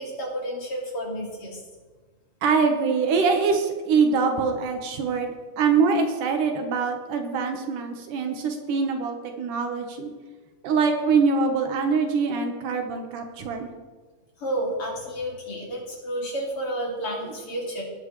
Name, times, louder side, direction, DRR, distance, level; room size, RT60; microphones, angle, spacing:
voice 1, 0.0-1.6 14.4-17.8, right 1 dB, 45° left, -3 dB, 3.5 m, -31 dB
voice 2, 2.4-10.1 10.6-13.7, right 5 dB, 80° right, 4 dB, 2.8 m, -24 dB
18.5 x 10.0 x 3.2 m, 1.4 s
omnidirectional pair, 3.6 m